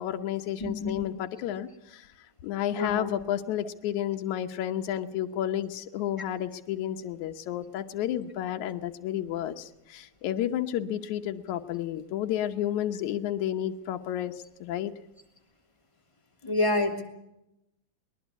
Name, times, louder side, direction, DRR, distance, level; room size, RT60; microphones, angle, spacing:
voice 1, 0.0-2.0 2.4-14.3 14.6-14.9, left 11 dB, 80° left, 6 dB, 2.4 m, -31 dB
voice 2, 0.6-1.0 2.7-3.1 16.4-17.0, left 2 dB, 10° left, 2 dB, 2.5 m, -28 dB
21.5 x 21.0 x 8.2 m, 0.87 s
omnidirectional pair, 3.3 m